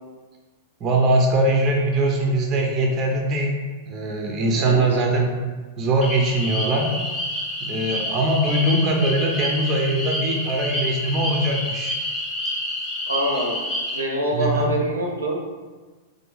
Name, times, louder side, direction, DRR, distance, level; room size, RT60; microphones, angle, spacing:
voice 1, 0.8-3.6 3.9-5.3 5.8-6.9 7.6-11.9 14.3-14.7, right 1 dB, 30° right, 0 dB, 0.6 m, -21 dB
voice 2, 4.5-5.0 13.1-13.6 13.9-15.4, equal, 85° right, -1 dB, 0.6 m, -25 dB
sound 1, 6.0-14.0, left 1 dB, 30° left, 0.6 m, -28 dB
3.4 x 2.2 x 3.1 m, 1.3 s
figure-of-eight pair, 100°, 0 cm